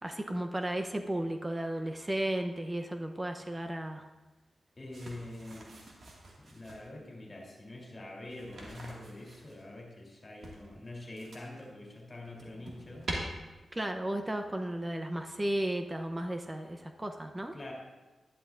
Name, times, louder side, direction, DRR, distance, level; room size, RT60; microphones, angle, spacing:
voice 1, 0.0-4.0 13.7-17.5, right 1 dB, 25° right, 5 dB, 0.7 m, -34 dB
voice 2, 4.8-5.7 6.4-13.1 17.5-17.7, left 1 dB, 40° left, -2 dB, 3.0 m, -45 dB
sound 1, 4.9-6.9 8.3-9.6 10.4-11.7 12.1-13.2, right 2 dB, 65° right, 2.0 m, -45 dB
12.0 x 11.0 x 2.5 m, 1.2 s
cardioid pair, 60°, 0 cm